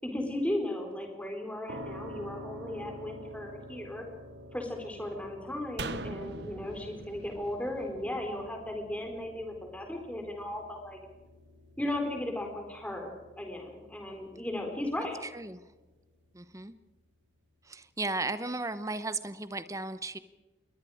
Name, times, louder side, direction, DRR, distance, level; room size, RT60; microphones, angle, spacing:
voice 1, 0.0-4.0 4.5-11.0 11.8-15.2, left 1 dB, 5° left, 3 dB, 4.2 m, -36 dB
sound 1, 1.7-16.5, left 1 dB, 75° right, 1.7 m, -50 dB
sound 2, 5.8-9.1 9.4-9.5, right 3 dB, 60° right, 0.9 m, -42 dB
voice 2, 16.3-16.7 17.6-20.2, right 2 dB, 15° right, 13 dB, 0.9 m, -35 dB
27.5 x 22.0 x 5.0 m, 1.2 s
head